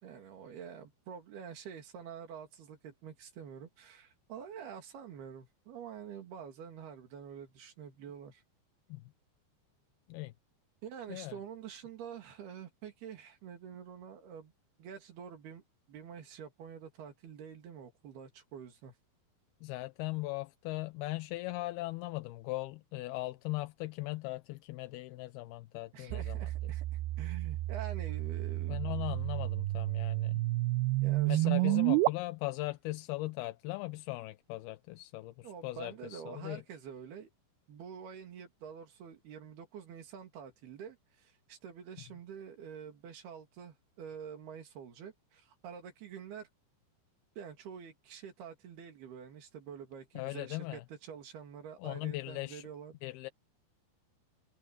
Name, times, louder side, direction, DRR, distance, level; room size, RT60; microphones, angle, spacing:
voice 1, 0.0-8.4 10.8-14.5 14.8-15.6 15.9-18.9 25.9-26.8 27.2-29.0 31.0-31.9 35.4-37.3 37.7-46.5 47.4-53.0, right 8 dB, 65° right, 4.5 m, -47 dB
voice 2, 19.6-26.4 26.6-26.7 28.7-30.4 31.3-36.6 50.2-50.8 51.8-52.7 53.0-53.3, left 19 dB, 75° left, 2.4 m, -39 dB
sound 1, 26.1-32.1, right 19 dB, 85° right, 2.4 m, -31 dB
omnidirectional pair, 5.1 m